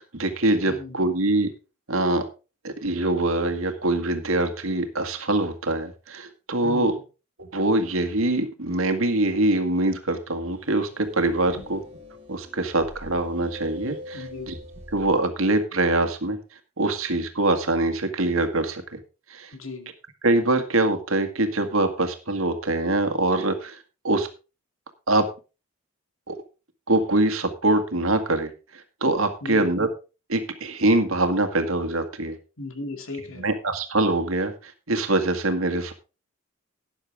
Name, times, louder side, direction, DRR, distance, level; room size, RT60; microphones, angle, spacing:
voice 1, 0.0-1.5 1.9-2.3 2.6-6.9 7.4-11.8 12.3-14.6 14.9-16.4 16.8-19.0 19.3-19.5 20.2-23.8 24.0-24.3 25.1-25.3 26.3-26.4 26.9-28.5 29.0-29.9 30.3-32.4 33.4-35.9, right 2 dB, 75° right, 1.9 m, -24 dB
voice 2, 0.7-1.1 6.6-7.0 11.5-11.6 14.1-14.5 19.5-19.9 29.4-29.7 32.6-33.5, left 2 dB, 70° left, 2.2 m, -36 dB
sound 1, 10.5-15.2, equal, 25° right, 3.1 m, -43 dB
12.5 x 10.5 x 3.5 m
head